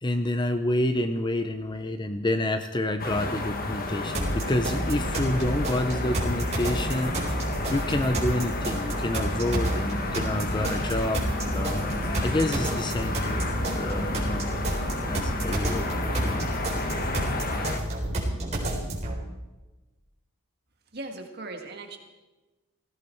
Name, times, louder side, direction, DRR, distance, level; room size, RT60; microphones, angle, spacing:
voice 1, 0.0-7.4 7.7-11.2 11.5-13.4 13.7-14.5 15.0-16.4, left 1 dB, 20° left, 8 dB, 0.6 m, -28 dB
sound 1, 3.0-17.8, left 2 dB, 40° left, 1.4 m, -32 dB
sound 2, 4.1-19.1, right 1 dB, 30° right, 4.1 m, -30 dB
voice 2, 20.9-22.0, right 2 dB, 50° right, 4 dB, 1.8 m, -38 dB
18.0 x 16.0 x 4.5 m, 1.1 s
head